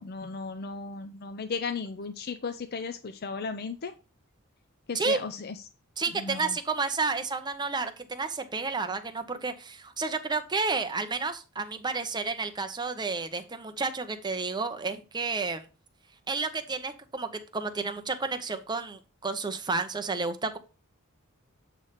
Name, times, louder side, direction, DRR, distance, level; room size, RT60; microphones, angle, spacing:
voice 1, 0.0-3.9 4.9-5.6 6.1-6.6, left 4 dB, 45° left, 8 dB, 0.5 m, -35 dB
voice 2, 6.0-15.7 16.3-20.6, right 4 dB, 20° right, 7 dB, 0.7 m, -31 dB
8.0 x 3.3 x 5.7 m, 0.32 s
head